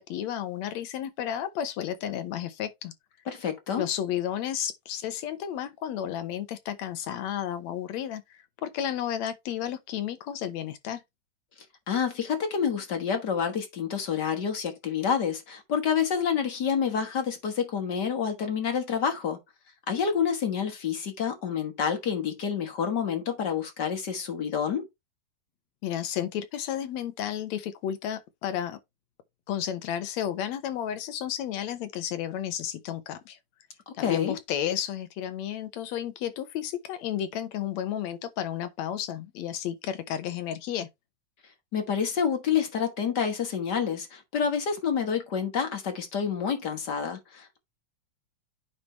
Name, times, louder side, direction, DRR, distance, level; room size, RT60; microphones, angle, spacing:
voice 1, 0.0-2.9 3.8-11.0 25.8-28.8 29.5-33.4 33.9-40.9, left 10 dB, 70° left, 2.1 m, -32 dB
voice 2, 3.2-3.8 11.9-19.4 19.9-24.9 33.9-34.3 41.7-47.6, left 7 dB, 45° left, 1.5 m, -28 dB
9.8 x 3.3 x 4.4 m
omnidirectional pair, 3.4 m